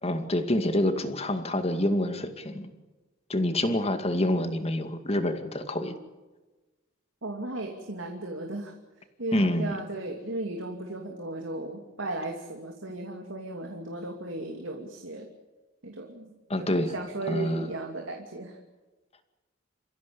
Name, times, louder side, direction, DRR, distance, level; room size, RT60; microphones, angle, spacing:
voice 1, 0.0-2.7 3.3-5.9 9.3-9.8 16.5-16.9 17.3-17.7, left 1 dB, 30° left, 7 dB, 2.3 m, -27 dB
voice 2, 7.2-8.7 9.2-15.3 15.8-16.3 16.6-18.6, right 2 dB, 90° right, 3 dB, 2.7 m, -36 dB
29.0 x 15.5 x 8.6 m, 1.2 s
head